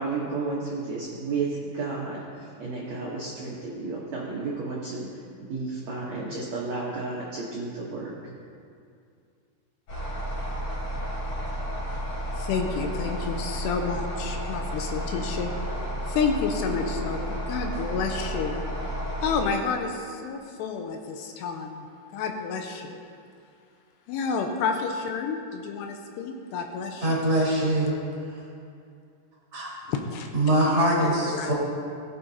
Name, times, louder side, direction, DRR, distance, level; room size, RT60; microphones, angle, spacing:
voice 1, 0.0-5.1 5.5-8.3, right 3 dB, 70° right, -6 dB, 1.7 m, -32 dB
sound 1, 9.9-19.5, equal, 50° left, 3.8 m, -32 dB
voice 2, 12.4-18.6 19.2-21.9 22.1-23.0 24.1-27.3 29.9-30.3 31.3-31.5, left 5 dB, 80° left, 4 dB, 2.8 m, -30 dB
voice 3, 27.0-28.0 29.5-29.7 30.3-31.5, right 1 dB, 35° right, -7 dB, 2.9 m, -23 dB
17.5 x 8.5 x 2.8 m, 2.4 s
omnidirectional pair, 4.9 m